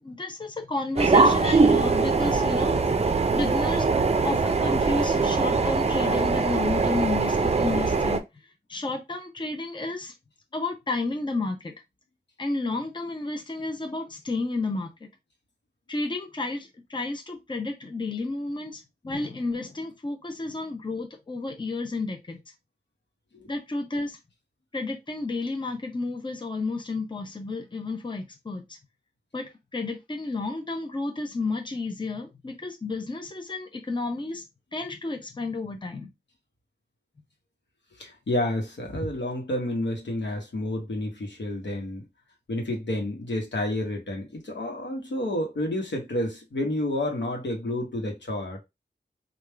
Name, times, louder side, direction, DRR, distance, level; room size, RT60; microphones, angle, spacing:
voice 1, 0.0-2.8 3.3-4.0 4.2-8.2 8.7-10.1 10.5-11.7 12.4-15.1 15.9-22.4 23.5-24.2 24.7-28.8 29.3-34.4 34.7-36.1, left 3 dB, 25° left, 0.7 m, -31 dB
sound 1, 1.0-8.2, right 4 dB, 35° right, 0.5 m, -22 dB
voice 2, 38.0-42.1 42.5-48.6, left 1 dB, 85° left, 1.1 m, -30 dB
3.5 x 2.4 x 3.3 m
wide cardioid pair, 65°, 18 cm